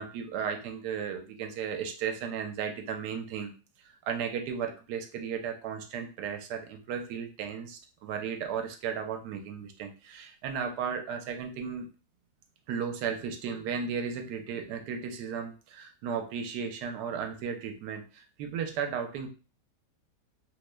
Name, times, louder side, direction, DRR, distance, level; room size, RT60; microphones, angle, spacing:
voice 1, 0.0-3.5 3.8-11.9 12.7-19.3, right 7 dB, 80° right, 5 dB, 1.2 m, -35 dB
3.1 x 2.1 x 3.2 m, 0.35 s
omnidirectional pair, 1.8 m